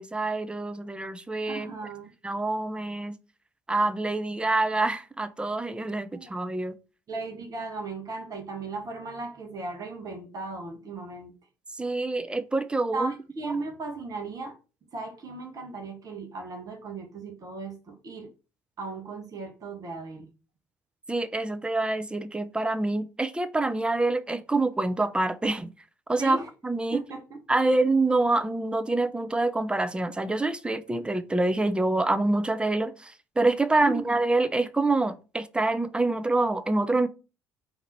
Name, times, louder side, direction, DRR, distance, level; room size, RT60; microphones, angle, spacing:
voice 1, 0.0-1.7 2.2-3.2 3.7-6.7 11.7-13.1 13.4-13.6 21.1-25.7 26.1-27.0 27.5-37.1, right 2 dB, 10° right, 0.5 m, -26 dB
voice 2, 1.5-2.1 6.1-6.3 7.1-11.3 12.9-14.6 14.9-18.3 18.8-20.3 26.2-26.5 26.9-27.2 33.8-34.2, right 3 dB, 40° right, 1.2 m, -36 dB
3.9 x 2.8 x 4.5 m
figure-of-eight pair, 55°, 9 cm